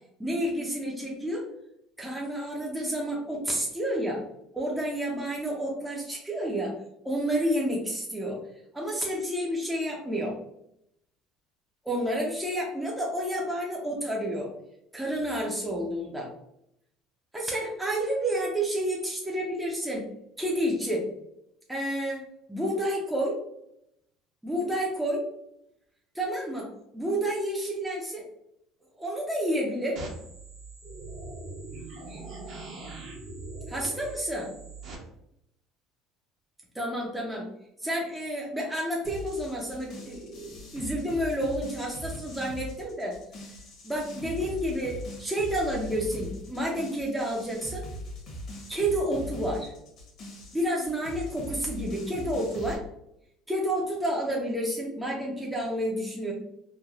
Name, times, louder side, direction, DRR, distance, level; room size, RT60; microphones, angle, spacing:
voice 1, 0.2-1.5 2.0-4.2 4.5-6.8 7.0-8.4 8.7-10.4 11.9-14.5 14.9-16.3 17.3-21.1 21.7-23.4 24.4-25.3 26.1-28.2 29.0-30.0 33.7-34.5 36.7-37.5 37.8-43.2 43.8-47.9 48.7-49.7 50.5-52.8 53.5-56.3, right 1 dB, 5° right, -3 dB, 0.5 m, -30 dB
sound 1, 30.0-35.0, right 2 dB, 55° right, 0.8 m, -41 dB
sound 2, 39.0-52.8, left 1 dB, 50° left, 0.9 m, -41 dB
3.2 x 2.1 x 2.3 m, 0.78 s
cardioid pair, 120°, 0 cm